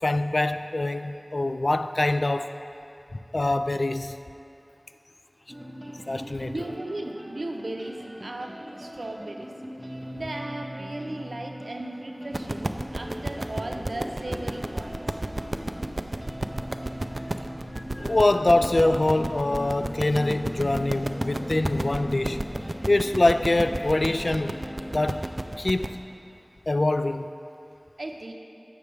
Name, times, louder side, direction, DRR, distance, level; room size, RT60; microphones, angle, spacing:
voice 1, 0.0-2.5 3.3-4.2 6.1-6.6 17.7-22.4 22.9-24.7 24.9-25.2 25.6-26.0 26.7-27.3, left 2 dB, 65° left, 10 dB, 0.3 m, -24 dB
sound 1, 5.5-25.3, equal, 20° right, 1.1 m, -40 dB
voice 2, 6.2-9.5 10.1-15.0 28.0-28.3, right 1 dB, 90° right, 3 dB, 0.7 m, -36 dB
sound 2, 12.3-25.9, right 1 dB, 55° right, 0.4 m, -32 dB
14.5 x 6.9 x 3.4 m, 2.7 s
wide cardioid pair, 45°, 0 cm